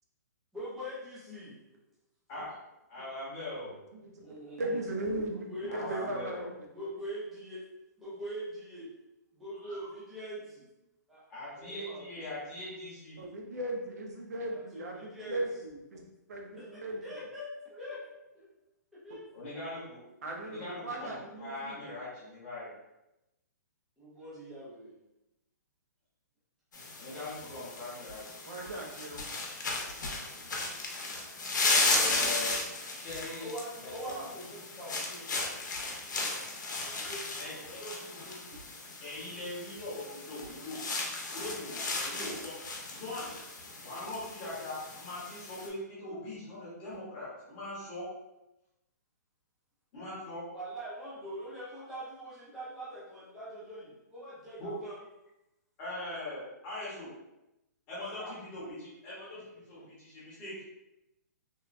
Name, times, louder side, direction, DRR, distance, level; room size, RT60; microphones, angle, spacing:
voice 1, 0.5-1.6 4.2-4.9 5.3-5.9 6.7-7.6 8.0-8.9 9.3-10.7 11.1-11.2 11.5-12.3 14.5-15.4 16.5-18.0 18.3-18.5 18.9-19.3 19.9-20.0 24.0-25.0 31.7-32.6 33.4-35.3 36.8-38.6 50.5-55.0 58.1-58.4, equal, ahead, -11 dB, 0.3 m, -43 dB
voice 2, 2.9-3.7 5.7-6.5 9.6-9.8 11.3-13.2 19.3-20.0 20.4-22.7 27.0-28.4 32.0-32.6 33.0-33.5 33.8-34.2 36.9-37.0 37.4-37.8 39.0-40.8 41.3-42.5 42.9-43.3 43.8-48.0 49.9-50.5 54.6-54.7 55.8-57.1 57.9-60.5, left 1 dB, 15° left, -10 dB, 0.8 m, -41 dB
voice 3, 3.6-4.2 4.6-5.5 5.8-6.5 13.2-17.0 20.2-21.8 28.4-29.3 36.5-36.7, right 1 dB, 60° right, 0 dB, 0.6 m, -37 dB
sound 1, 26.7-45.7, left 3 dB, 80° left, 0.6 m, -35 dB
3.0 x 2.1 x 2.4 m, 0.93 s
hypercardioid pair, 180°, 10 cm